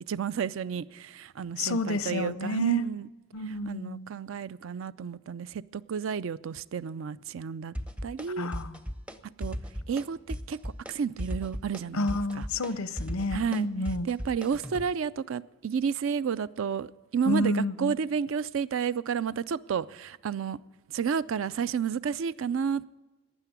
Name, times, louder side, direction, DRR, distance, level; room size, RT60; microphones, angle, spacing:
voice 1, 0.1-3.1 3.7-7.7 8.0-8.5 9.4-9.6 9.9-10.6 10.9-12.1 12.4-12.5 13.3-13.7 14.1-20.6 20.9-22.8, right 7 dB, 65° right, 0.4 m, -31 dB
voice 2, 1.6-2.9 3.3-4.1 8.4-8.8 11.9-14.1 17.3-18.0, left 1 dB, 90° left, 0.7 m, -30 dB
sound 1, 7.7-8.3 8.5-9.2 9.4-10.0 10.3-10.9 11.2-14.9, equal, 5° right, 0.5 m, -36 dB
12.5 x 9.0 x 9.3 m
head